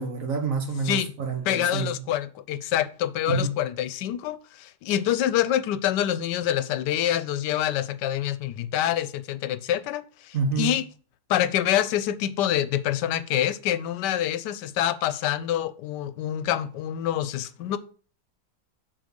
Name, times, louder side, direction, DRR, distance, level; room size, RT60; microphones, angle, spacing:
voice 1, 0.0-1.9 3.3-3.5 10.3-10.7, right 4 dB, 55° right, 1.4 m, -28 dB
voice 2, 1.4-10.8 11.3-17.8, left 11 dB, 90° left, 1.2 m, -26 dB
6.3 x 4.0 x 5.1 m
omnidirectional pair, 1.8 m